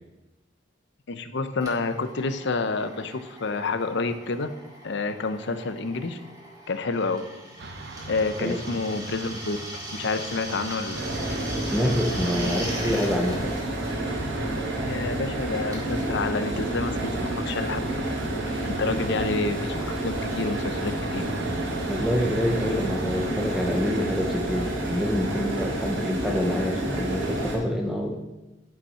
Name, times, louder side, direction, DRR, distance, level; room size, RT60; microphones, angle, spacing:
voice 1, 1.1-4.5 4.8-6.2 6.7-7.2 8.1-9.6 9.9-11.0 14.8-17.8 18.6-21.2, left 3 dB, 65° left, 10 dB, 0.7 m, -29 dB
Drill, 1.6-17.9, right 1 dB, 20° right, 2.1 m, -41 dB
sound 1, 7.6-24.1, right 2 dB, 60° right, 0.9 m, -40 dB
voice 2, 8.4-8.8 11.6-13.7 18.9-19.1 21.9-28.2, equal, ahead, 1 dB, 0.8 m, -27 dB
sound 2, 10.9-27.6, right 1 dB, 90° right, 3.1 m, -29 dB
9.1 x 5.6 x 5.6 m, 1.0 s
head